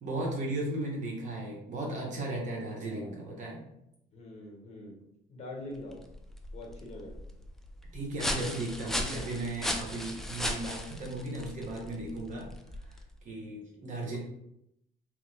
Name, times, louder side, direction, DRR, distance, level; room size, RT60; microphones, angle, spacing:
voice 1, 0.0-3.6 7.9-12.5 13.2-14.2, right 2 dB, 50° right, -2 dB, 0.9 m, -36 dB
voice 2, 2.8-3.2 4.1-5.0 5.3-6.0 6.5-7.2 13.7-14.2, left 2 dB, 40° left, -1 dB, 1.0 m, -44 dB
sound 1, 5.8-13.2, left 1 dB, ahead, 0.3 m, -37 dB
3.0 x 2.1 x 3.2 m, 0.80 s
cardioid pair, 110°, 17 cm